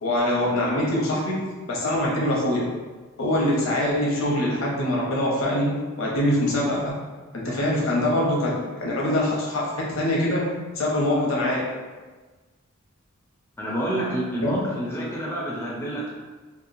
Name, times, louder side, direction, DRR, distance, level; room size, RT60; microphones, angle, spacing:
voice 1, 0.0-2.7 3.2-7.0 7.3-11.7 14.4-14.6, left 1 dB, 75° left, -4 dB, 0.7 m, -24 dB
voice 2, 13.6-16.1, right 1 dB, 10° left, -5 dB, 0.4 m, -28 dB
2.8 x 2.1 x 2.6 m, 1.3 s
head